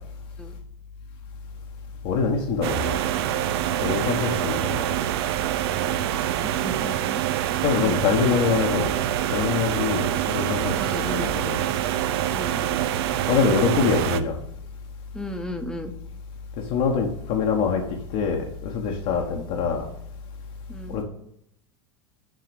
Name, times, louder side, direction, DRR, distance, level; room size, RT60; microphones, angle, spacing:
voice 1, 2.0-3.0 3.8-5.0 7.6-8.9 9.3-11.6 13.3-14.4 16.6-19.9 20.9-21.0, left 5 dB, 50° left, 0 dB, 1.2 m, -24 dB
sound 1, 2.6-14.2, right 12 dB, 60° right, 0.5 m, -25 dB
voice 2, 6.4-7.5 7.8-8.7 10.7-11.3 12.3-12.6 15.1-15.9 19.1-19.4 20.7-21.0, left 1 dB, 5° left, 6 dB, 1.0 m, -35 dB
6.4 x 4.8 x 6.8 m, 0.75 s
figure-of-eight pair, 85°, 15 cm